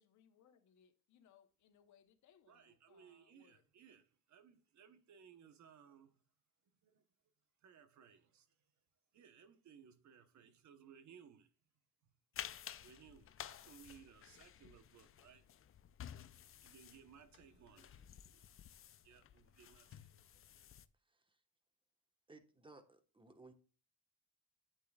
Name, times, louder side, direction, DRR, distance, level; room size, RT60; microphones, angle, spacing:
voice 1, 0.0-3.7 16.0-16.3, left 8 dB, 70° left, 1.1 m, -70 dB
voice 2, 2.5-6.2 6.8-7.0 7.6-8.6 9.1-11.5 12.8-15.5 16.6-18.5 19.0-20.3, right 7 dB, 70° right, 1.1 m, -62 dB
sound 1, 12.3-20.9, left 10 dB, 45° left, 0.5 m, -53 dB
voice 3, 21.1-21.4 22.3-23.5, right 3 dB, 15° right, 1.3 m, -60 dB
8.6 x 8.3 x 2.4 m
cardioid pair, 90°, 30 cm